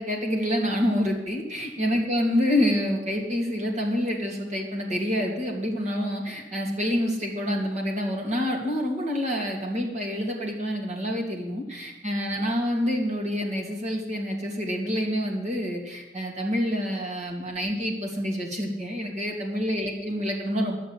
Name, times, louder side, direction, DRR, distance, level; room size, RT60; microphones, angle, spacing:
voice 1, 0.0-20.8, equal, 40° right, 0 dB, 2.6 m, -27 dB
11.0 x 7.7 x 9.9 m, 1.0 s
head